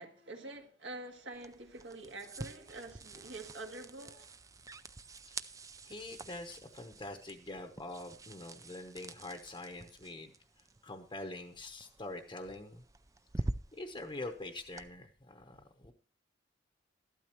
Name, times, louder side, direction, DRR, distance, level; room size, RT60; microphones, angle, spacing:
voice 1, 0.0-4.3, right 2 dB, 65° right, 1.8 m, -46 dB
sound 1, 1.3-14.9, right 2 dB, 20° right, 0.4 m, -47 dB
voice 2, 5.8-10.3 10.8-12.8 13.8-15.9, left 2 dB, 25° left, 0.9 m, -44 dB
13.5 x 12.0 x 3.0 m
head